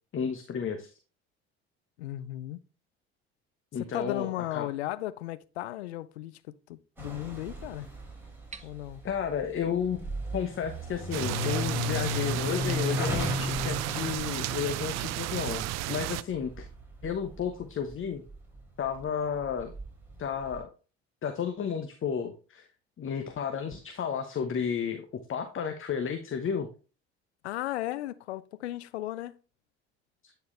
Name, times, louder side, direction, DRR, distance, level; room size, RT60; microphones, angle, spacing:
voice 1, 0.1-0.9 3.7-4.7 9.0-16.7 17.0-18.2 18.8-19.7 20.2-20.7 21.2-22.7 23.0-26.7, left 7 dB, 40° left, 1.1 m, -32 dB
voice 2, 2.0-2.6 3.8-7.9 8.6-9.0 27.4-29.4, left 15 dB, 85° left, 0.6 m, -36 dB
sound 1, 7.0-18.0 18.2-20.6, left 1 dB, 5° right, 4.0 m, -36 dB
sound 2, 8.5-8.7 10.5-10.6 11.3-12.3 13.1-14.4, right 4 dB, 20° right, 1.0 m, -43 dB
sound 3, 11.1-16.2, right 16 dB, 55° right, 0.5 m, -33 dB
9.5 x 4.6 x 3.3 m
hypercardioid pair, 60°, 32 cm